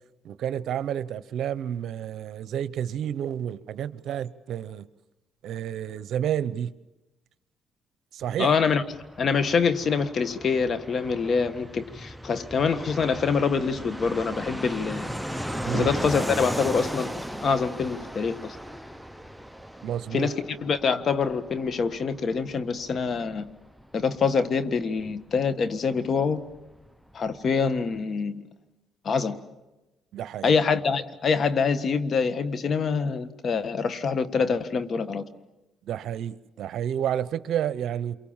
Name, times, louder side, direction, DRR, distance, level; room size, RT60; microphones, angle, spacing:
voice 1, 0.2-4.9 5.4-6.7 8.1-8.5 15.6-15.9 19.8-20.3 30.1-30.5 35.9-38.2, right 10 dB, 75° right, 0.8 m, -30 dB
Fixed-wing aircraft airplane, 8.2-26.6 26.8-26.9 27.1-27.9, equal, ahead, 0.8 m, -37 dB
voice 2, 8.4-8.8 9.2-15.1 15.7-17.1 17.4-18.6 20.1-23.5 23.9-26.4 27.1-28.4 29.0-29.4 30.4-35.2, left 5 dB, 50° left, 1.6 m, -25 dB
28.5 x 23.5 x 7.3 m
cardioid pair, 90°, 0 cm